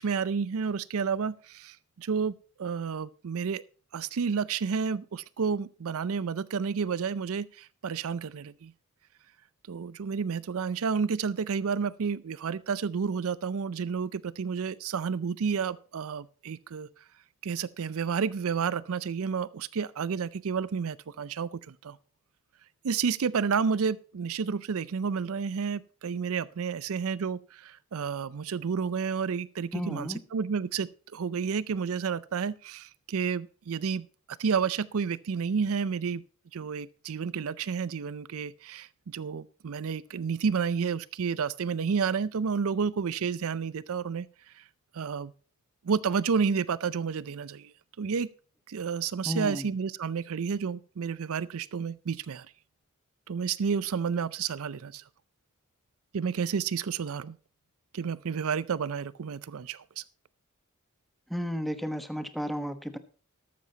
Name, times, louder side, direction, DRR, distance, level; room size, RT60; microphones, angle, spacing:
voice 1, 0.0-3.6 3.9-8.7 9.7-16.9 17.4-22.0 22.8-36.2 36.5-44.6 44.9-45.3 45.8-48.3 48.7-52.5 53.3-55.0 56.1-57.4 57.9-60.0, right 6 dB, 65° right, 0.5 m, -31 dB
voice 2, 29.7-30.2 49.2-49.7 61.3-63.0, equal, ahead, 1.1 m, -33 dB
13.5 x 12.0 x 2.8 m
head